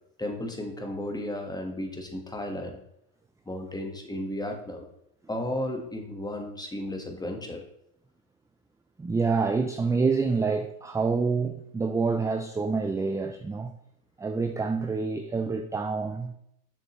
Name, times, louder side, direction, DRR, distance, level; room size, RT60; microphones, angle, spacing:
voice 1, 0.2-2.8 3.4-4.9 5.3-7.6, left 1 dB, 10° left, 1.5 m, -34 dB
voice 2, 9.0-13.7 14.2-16.3, right 4 dB, 10° right, 0.3 m, -27 dB
7.2 x 6.6 x 3.1 m
supercardioid pair, 95°, 41 cm